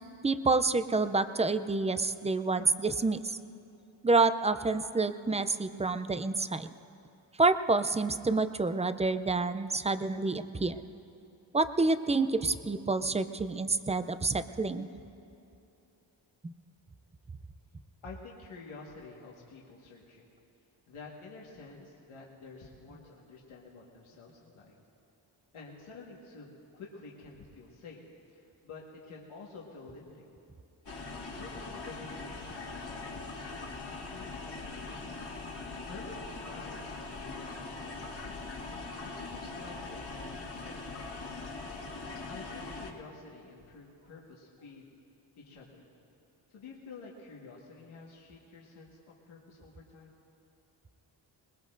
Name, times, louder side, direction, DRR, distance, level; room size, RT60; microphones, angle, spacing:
voice 1, 0.2-3.4 4.0-6.7 7.4-10.8 11.5-14.9 16.4-16.5, right 3 dB, 15° right, 11 dB, 0.4 m, -28 dB
voice 2, 18.0-20.3 20.9-24.7 25.5-28.0 28.3-30.3 31.2-33.3 34.1-35.2 35.9-38.4 39.0-41.1 42.3-44.9 45.4-45.9 46.5-50.2, left 4 dB, 80° left, -3 dB, 1.7 m, -50 dB
sound 1, 30.8-42.9, left 3 dB, 55° left, 1.9 m, -41 dB
21.5 x 20.5 x 2.6 m, 2.7 s
cardioid pair, 90°, 48 cm